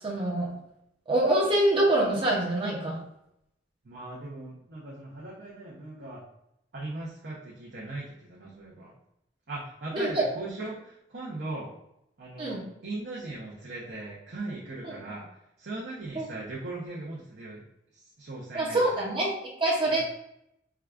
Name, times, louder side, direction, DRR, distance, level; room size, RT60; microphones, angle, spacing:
voice 1, 0.0-0.5 1.1-3.0 9.9-10.3 12.4-12.7 14.8-14.9 16.1-16.2 18.5-20.0, right 1 dB, 30° right, -4 dB, 0.6 m, -25 dB
voice 2, 3.8-6.2 6.7-8.9 9.5-11.7 12.2-15.3 15.6-17.6 17.9-19.0 19.9-20.0, right 2 dB, 65° right, -6 dB, 0.7 m, -39 dB
4.7 x 2.2 x 2.4 m, 0.78 s
head